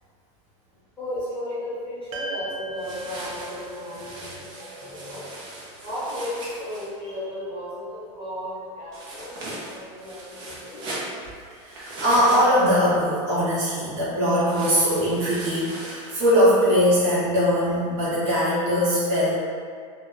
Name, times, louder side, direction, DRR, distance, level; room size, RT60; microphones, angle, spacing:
voice 1, 1.0-5.3 5.8-10.8, left 1 dB, 5° left, -14 dB, 1.0 m, -35 dB
sound 1, 2.1-6.6, right 2 dB, 85° right, 0.5 m, -38 dB
sound 2, 2.8-6.9 8.9-12.9 14.5-16.3, right 1 dB, 25° right, 0.5 m, -39 dB
voice 2, 11.7-19.3, equal, 50° right, -9 dB, 0.9 m, -21 dB
2.1 x 2.1 x 3.5 m, 2.1 s
supercardioid pair, 170°, 17 cm